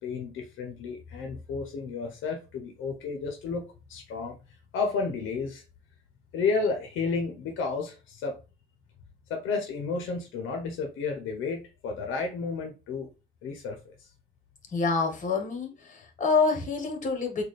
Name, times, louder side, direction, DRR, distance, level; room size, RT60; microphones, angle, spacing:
voice 1, 0.0-4.4 4.7-5.6 6.3-8.4 9.3-13.1 13.4-14.1, left 4 dB, 75° left, 0.7 m, -32 dB
voice 2, 14.7-17.4, left 4 dB, 40° left, 1.2 m, -27 dB
4.0 x 2.3 x 3.2 m
cardioid pair, 80°, 21 cm